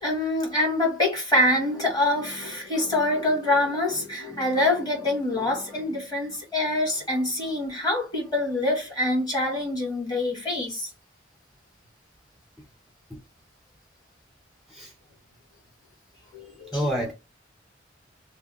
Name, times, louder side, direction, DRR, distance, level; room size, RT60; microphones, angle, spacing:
voice 1, 0.0-10.9 16.3-16.9, left 1 dB, 20° left, 1.1 m, -25 dB
voice 2, 16.7-17.1, equal, ahead, 0.4 m, -28 dB
2.7 x 2.0 x 2.2 m
head